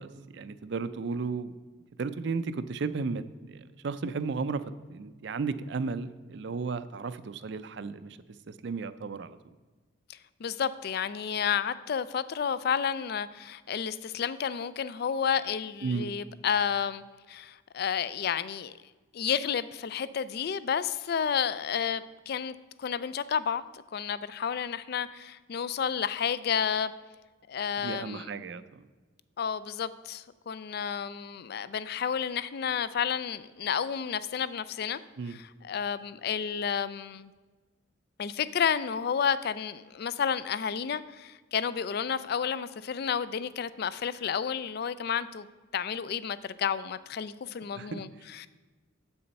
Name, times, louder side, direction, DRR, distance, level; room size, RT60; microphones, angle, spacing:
voice 1, 0.0-1.5 2.0-4.6 4.9-8.2 8.5-9.4 15.8-16.1 27.8-28.9 35.2-35.4 47.8-48.0, right 4 dB, 55° right, 13 dB, 0.4 m, -34 dB
voice 2, 10.1-18.8 19.1-26.9 27.5-28.3 29.4-35.0 35.3-37.3 38.2-45.5 45.7-48.5, left 7 dB, 50° left, 16 dB, 0.3 m, -31 dB
7.8 x 7.1 x 5.3 m, 1.3 s
head